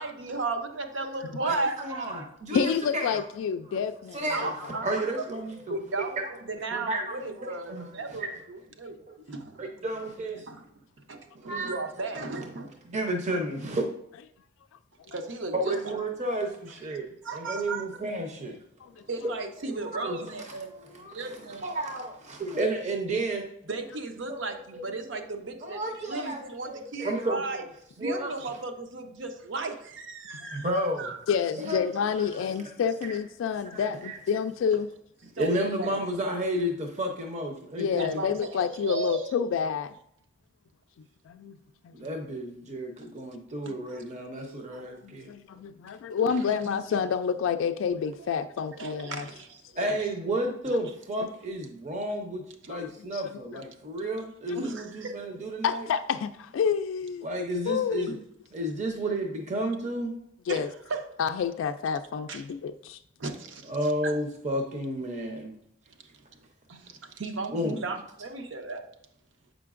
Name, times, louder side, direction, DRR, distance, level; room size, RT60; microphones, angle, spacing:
voice 1, 0.0-2.3 4.3-5.1 5.7-6.2 6.5-9.0 9.3-9.6 10.5-10.6 11.1-12.8 15.1-15.9 17.2-17.9 19.1-20.7 21.1-21.6 23.7-27.6 28.0-30.7 31.0-31.2 35.4-36.0 37.9-39.4 43.9-44.0 44.3-45.0 46.2-46.5 48.3-48.5 48.7-49.8 54.5-55.2 58.1-58.2 60.5-61.1 62.3-62.5 63.2-64.1 65.9-66.2 66.7-68.9, right 3 dB, 70° right, 6 dB, 0.7 m, -35 dB
voice 2, 1.3-3.2 3.7-3.8 4.1-5.8 6.2-6.3 6.7-7.3 7.7-8.3 9.1-9.2 9.6-10.5 11.3-11.7 12.9-13.8 15.5-18.6 19.2-19.3 19.8-23.5 24.3-24.4 24.7-24.9 25.6-27.6 28.0-28.3 30.5-31.1 31.6-31.9 32.2-32.7 33.0-33.2 33.7-34.2 35.4-38.2 42.0-45.3 49.8-55.9 57.2-58.2 58.5-60.1 63.7-65.5 67.5-67.8, right 1 dB, 40° right, 3 dB, 0.6 m, -32 dB
voice 3, 2.5-4.3 15.1-15.2 18.8-18.9 30.4-30.6 31.3-34.9 37.8-39.9 41.3-41.6 41.8-41.9 43.7-43.8 45.0-49.3 52.7-53.2 53.5-53.6 54.0-54.1 54.5-54.6 55.6-57.3 57.7-58.2 60.5-60.7 61.2-63.0, left 7 dB, 85° left, 9 dB, 0.3 m, -29 dB
7.6 x 5.0 x 2.4 m, 0.76 s
head